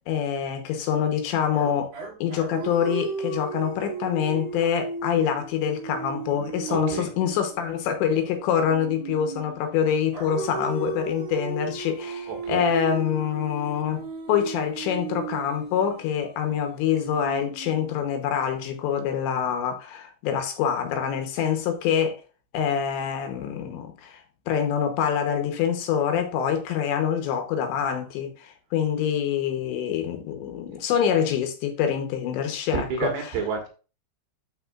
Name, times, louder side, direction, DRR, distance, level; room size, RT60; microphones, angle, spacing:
voice 1, 0.1-1.9 2.2-22.2 22.5-24.2 24.5-33.1, left 8 dB, 80° left, 3.2 m, -25 dB
sound 1, 1.5-9.6 10.1-18.2, right 4 dB, 55° right, 4.1 m, -36 dB
voice 2, 6.7-7.1 12.3-12.7 32.7-33.7, right 5 dB, 75° right, 3.7 m, -30 dB
12.0 x 4.9 x 2.4 m
omnidirectional pair, 5.2 m